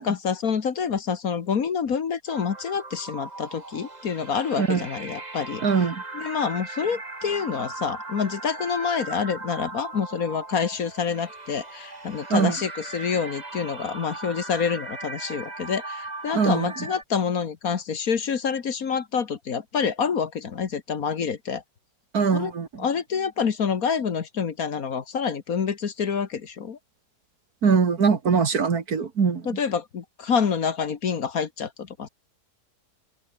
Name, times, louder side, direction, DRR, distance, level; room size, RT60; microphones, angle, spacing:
voice 1, 0.0-5.6 6.1-21.6 22.3-22.5 22.8-26.8 29.5-32.1, left 6 dB, 60° left, 1.8 m, -27 dB
sound 1, 2.3-17.0, right 2 dB, 25° right, 2.3 m, -38 dB
voice 2, 5.6-6.0 12.3-12.6 16.3-16.9 22.1-22.9 27.6-29.5, right 5 dB, 60° right, 2.4 m, -22 dB
omnidirectional pair, 1.8 m